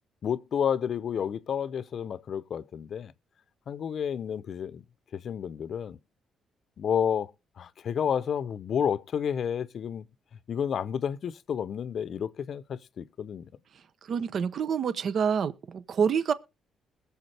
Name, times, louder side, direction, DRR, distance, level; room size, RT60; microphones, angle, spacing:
voice 1, 0.2-3.1 3.7-4.8 5.1-6.0 6.8-7.3 7.6-10.0 10.5-13.5, left 8 dB, 60° left, 0.6 m, -30 dB
voice 2, 14.0-16.3, right 7 dB, 60° right, 0.7 m, -27 dB
21.0 x 7.2 x 3.3 m
cardioid pair, 90°, 0 cm